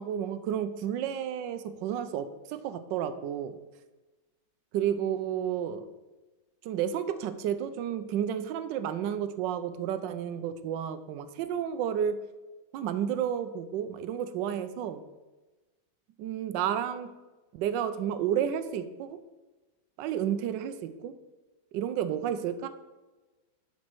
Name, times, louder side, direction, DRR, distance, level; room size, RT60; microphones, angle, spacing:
voice 1, 0.0-3.6 4.7-5.9 6.6-12.2 12.7-15.0 16.2-17.1 17.5-19.2 20.0-21.1 21.7-22.7, right 9 dB, 80° right, 10 dB, 1.3 m, -31 dB
11.5 x 4.3 x 4.6 m, 1.2 s
omnidirectional pair, 2.0 m